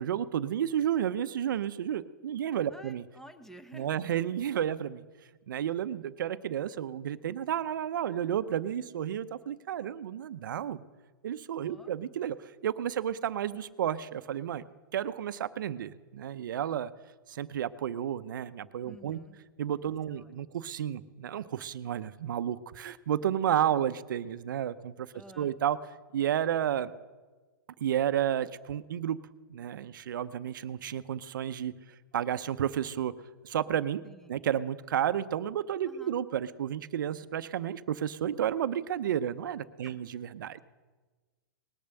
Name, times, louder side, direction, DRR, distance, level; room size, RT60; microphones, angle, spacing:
voice 1, 0.0-3.0 3.7-5.0 5.5-10.8 11.2-14.6 14.9-16.9 17.3-19.2 19.6-25.1 25.4-25.8 26.1-26.9 27.8-29.2 29.5-31.7 32.1-33.1 33.4-34.0 34.3-40.6, right 10 dB, 75° right, 15 dB, 0.6 m, -31 dB
voice 2, 2.7-4.0 11.6-11.9 18.8-19.4 20.1-20.3 25.1-25.5 34.0-34.4 35.9-36.2 39.8-40.0, right 1 dB, 5° left, 9 dB, 0.9 m, -51 dB
19.5 x 6.9 x 6.7 m, 1.3 s
hypercardioid pair, 125°, 11 cm